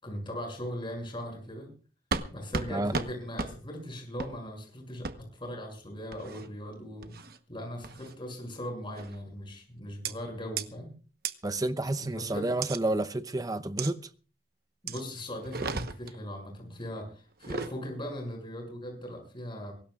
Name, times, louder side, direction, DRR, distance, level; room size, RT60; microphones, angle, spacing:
voice 1, 0.0-1.7 2.3-10.9 12.3-12.5 14.8-19.7, equal, 30° left, 6.6 m, -39 dB
sound 1, 2.1-2.3 2.5-2.7 2.9-3.1 3.4-3.5 4.2-4.3 5.0-5.1 6.1-6.5 7.0-7.4 7.8-8.1 9.0-9.2 10.0-10.1 10.6-10.7 11.2-11.3 12.6-12.8 13.8-13.9 14.9-15.0 15.4-16.2 17.3-17.7, right 4 dB, 60° right, 1.1 m, -34 dB
voice 2, 11.4-14.0, right 2 dB, 20° right, 0.8 m, -30 dB
23.0 x 18.5 x 2.5 m
head